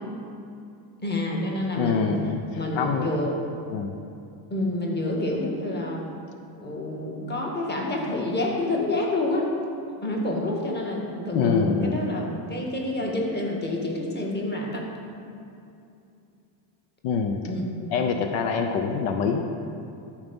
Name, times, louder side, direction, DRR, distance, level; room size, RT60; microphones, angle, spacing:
voice 1, 1.0-2.1 2.6-3.3 4.5-6.0 6.6-9.5 10.0-14.9 17.5-17.7, left 2 dB, 20° left, -2 dB, 1.8 m, -28 dB
voice 2, 1.7-3.1 3.7-3.9 11.3-12.0 17.0-17.4 17.9-19.5, left 5 dB, 75° left, 5 dB, 0.8 m, -25 dB
13.0 x 4.8 x 5.3 m, 2.6 s
cardioid pair, 125°, 50 cm